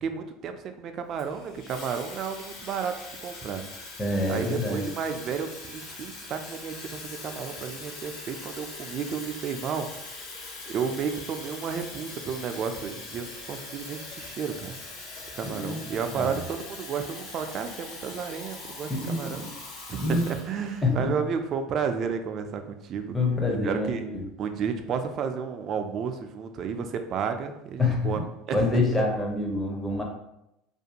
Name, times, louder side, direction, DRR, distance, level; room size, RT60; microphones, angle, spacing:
voice 1, 0.0-3.0 3.2-3.6 4.3-9.9 10.7-14.7 15.3-19.5 19.9-23.2 23.6-24.1 24.4-28.2 28.5-28.6 28.9-29.0, right 6 dB, 40° right, 6 dB, 0.3 m, -32 dB
Water tap faucet / Fill (with liquid), 1.2-20.9, left 3 dB, 65° left, 0.7 m, -42 dB
voice 2, 4.0-4.8 15.4-15.8 16.2-16.5 19.0-19.5 20.0-20.2 20.8-21.1 23.1-24.3 27.8-28.3 28.5-30.0, left 2 dB, 10° left, -1 dB, 0.6 m, -26 dB
2.5 x 2.2 x 2.7 m, 0.86 s
supercardioid pair, 120°, 0 cm